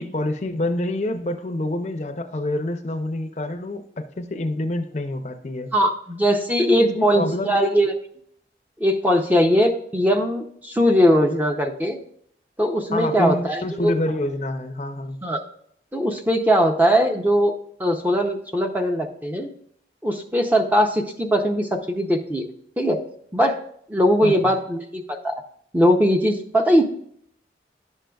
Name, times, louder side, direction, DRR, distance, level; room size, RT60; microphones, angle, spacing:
voice 1, 0.0-5.7 6.8-7.6 12.9-15.2 24.2-24.3, left 1 dB, 40° left, 7 dB, 0.5 m, -27 dB
voice 2, 5.7-7.9 8.8-12.0 12.6-13.9 15.2-15.4 15.9-17.5 17.8-19.5 20.0-22.4 22.8-23.0 23.3-23.6 23.9-25.3 25.7-26.8, equal, 10° right, 4 dB, 0.5 m, -20 dB
10.5 x 6.3 x 2.3 m, 0.67 s
head